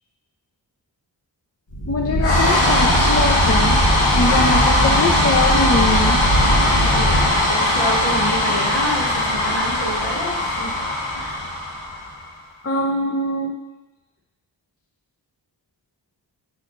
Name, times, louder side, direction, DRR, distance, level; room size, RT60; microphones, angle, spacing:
sound 1, 1.7-12.2, left 1 dB, 90° left, 1.5 m, -18 dB
voice 1, 1.9-3.8 4.1-6.2 12.6-13.6, left 2 dB, 35° left, 1 dB, 0.6 m, -22 dB
voice 2, 6.8-10.7 11.2-11.4, equal, 70° left, -6 dB, 2.3 m, -28 dB
6.3 x 4.7 x 5.3 m, 1.0 s
wide cardioid pair, 70°, 44 cm